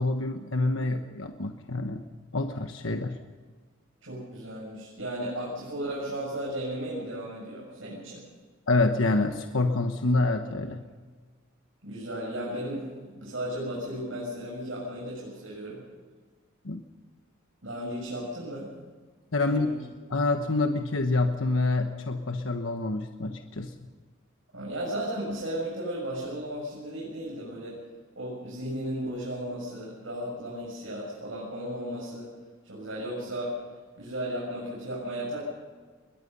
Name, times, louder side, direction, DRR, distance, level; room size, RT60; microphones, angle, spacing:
voice 1, 0.0-2.0 2.3-3.2 8.7-10.8 16.6-16.8 19.3-23.9, left 2 dB, 80° left, 5 dB, 1.2 m, -27 dB
voice 2, 4.0-8.2 11.8-15.8 17.6-18.8 19.5-19.7 24.5-27.9 28.2-32.4 32.7-33.6 34.0-35.4, right 1 dB, 75° right, -4 dB, 7.3 m, -35 dB
22.0 x 21.0 x 5.6 m, 1.5 s
head